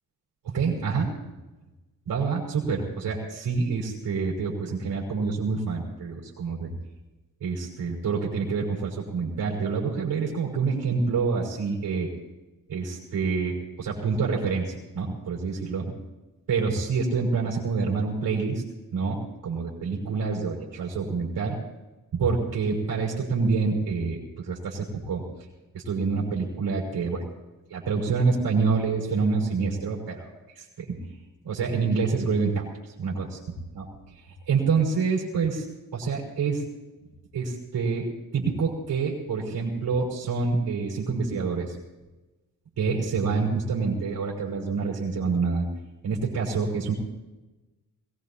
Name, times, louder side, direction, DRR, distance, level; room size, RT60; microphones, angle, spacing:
voice 1, 0.5-1.1 2.1-6.7 7.4-12.1 12.7-16.0 16.5-18.6 18.9-19.2 19.4-21.6 22.1-25.2 25.7-27.3 27.7-30.3 30.6-31.1 31.4-32.7 33.0-33.6 34.5-35.6 35.9-36.6 37.3-38.1 38.3-41.8 42.8-45.7 46.0-46.9, right 4 dB, 80° right, -4 dB, 5.5 m, -27 dB
21.5 x 20.0 x 2.9 m, 1.1 s
cardioid pair, 115°, 35 cm